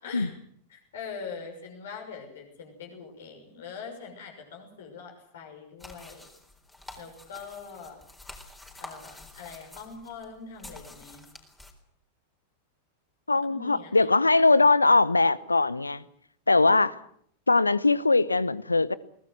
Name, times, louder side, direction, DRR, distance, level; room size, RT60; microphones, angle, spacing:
voice 1, 0.7-6.3 7.0-8.0 8.8-11.3 13.5-14.4, left 5 dB, 60° left, 6.4 m, -43 dB
sound 1, 5.8-11.7, left 2 dB, 10° left, 4.0 m, -48 dB
voice 2, 13.3-16.0 16.5-17.0 17.5-18.9, left 3 dB, 80° left, 0.9 m, -21 dB
22.5 x 19.0 x 8.1 m
figure-of-eight pair, 90°, 0 cm